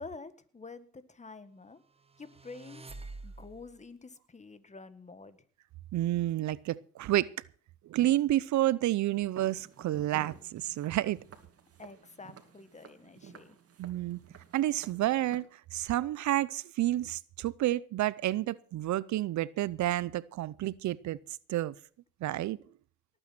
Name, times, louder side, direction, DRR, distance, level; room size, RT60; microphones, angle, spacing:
voice 1, 0.0-1.8 2.2-2.8 3.2-5.4 11.8-13.6, left 4 dB, 25° left, 1.6 m, -48 dB
sound 1, 2.0-3.8, right 3 dB, 20° right, 1.2 m, -47 dB
voice 2, 5.9-7.3 7.8-11.2 13.8-14.2 14.5-21.2 21.5-21.7 22.2-22.6, right 14 dB, 70° right, 0.6 m, -30 dB
Walk footsteps, 9.4-15.4, right 6 dB, 50° right, 2.4 m, -53 dB
18.5 x 9.0 x 5.9 m
cardioid pair, 90°, 30 cm